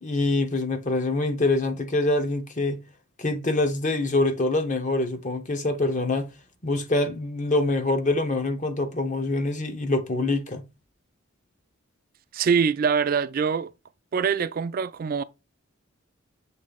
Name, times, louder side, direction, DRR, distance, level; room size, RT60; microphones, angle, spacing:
voice 1, 0.0-2.8 3.2-6.3 6.6-10.6, left 2 dB, 40° left, 1.0 m, -25 dB
voice 2, 12.3-13.7 14.1-15.2, right 6 dB, 45° right, 0.3 m, -24 dB
7.3 x 3.2 x 4.1 m
head